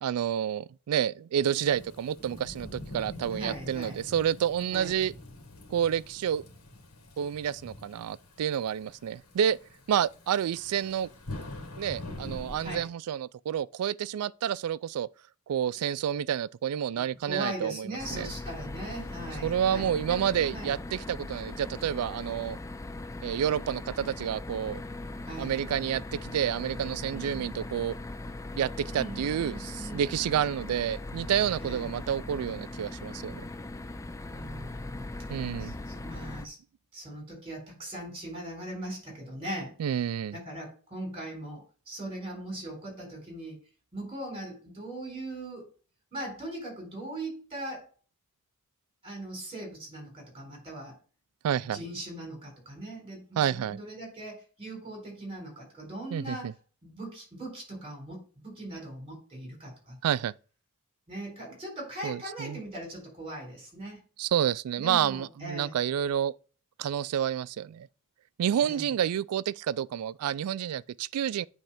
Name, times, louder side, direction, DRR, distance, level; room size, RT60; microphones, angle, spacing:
voice 1, 0.0-5.1 5.7-6.4 7.2-9.6 9.9-11.1 11.8-15.1 15.5-18.3 19.4-22.6 23.2-24.8 25.4-28.0 28.6-33.4 35.3-35.7 39.8-40.4 51.4-51.8 53.4-53.8 56.1-56.5 60.0-60.3 62.0-62.6 64.2-66.3 66.8-67.9 68.4-71.5, right 9 dB, 80° right, 0.3 m, -29 dB
Thunderstorm / Rain, 1.6-12.8, left 1 dB, 85° left, 1.9 m, -45 dB
voice 2, 3.3-4.0 4.7-4.9 12.6-12.9 17.2-20.2 20.5-20.8 25.2-25.5 27.1-27.5 28.9-30.0 31.6-31.9 34.3-35.1 35.6-36.6 36.9-39.8 40.3-43.6 43.9-45.7 46.1-47.9 49.0-51.0 51.7-56.5 56.8-60.0 61.1-64.0 64.8-65.8 68.6-68.9, right 1 dB, 25° right, 4.1 m, -40 dB
sound 1, 18.0-36.5, left 2 dB, 15° left, 0.4 m, -40 dB
9.1 x 3.2 x 5.7 m
head